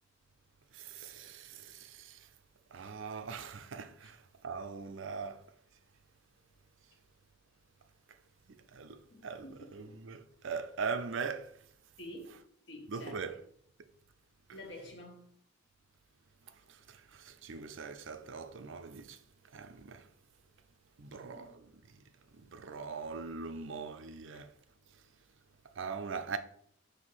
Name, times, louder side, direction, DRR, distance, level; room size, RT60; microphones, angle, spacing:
voice 1, 0.7-2.3 2.7-5.4 8.5-11.5 12.9-13.4 13.8-13.9 16.7-19.2 19.5-20.1 21.0-22.0 22.3-24.5 25.8-26.4, right 5 dB, 65° right, 0.5 m, -41 dB
voice 2, 9.1-10.0 12.0-13.3 14.5-15.4 21.1-21.6, left 1 dB, 60° left, 1.3 m, -50 dB
6.2 x 2.8 x 5.5 m
head